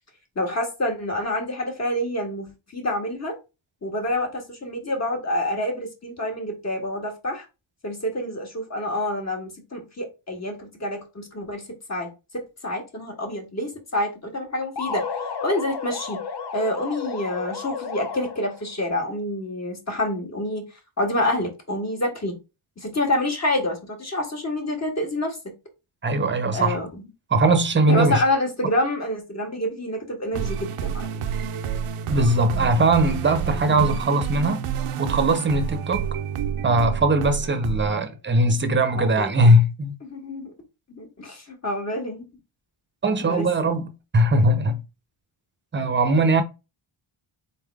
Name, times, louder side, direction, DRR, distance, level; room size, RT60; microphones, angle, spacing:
voice 1, 0.3-2.5 2.7-3.4 3.8-7.4 7.8-11.6 11.9-12.1 12.3-15.0 15.4-16.2 16.5-20.6 21.0-22.3 22.8-25.4 26.5-27.0 27.9-31.1 38.9-39.5 40.0-40.5 40.9-42.2 43.2-43.5, left 1 dB, 30° left, 1.7 m, -27 dB
sound 1, 14.8-18.6, left 5 dB, 55° left, 0.9 m, -32 dB
voice 2, 26.0-26.8 27.3-28.2 32.1-34.6 35.0-36.0 36.6-40.0 43.0-44.8 45.7-46.4, right 1 dB, 25° right, 0.8 m, -20 dB
sound 2, 30.3-38.0, right 8 dB, 85° right, 0.7 m, -29 dB
4.1 x 3.8 x 3.4 m
wide cardioid pair, 150°, 50 cm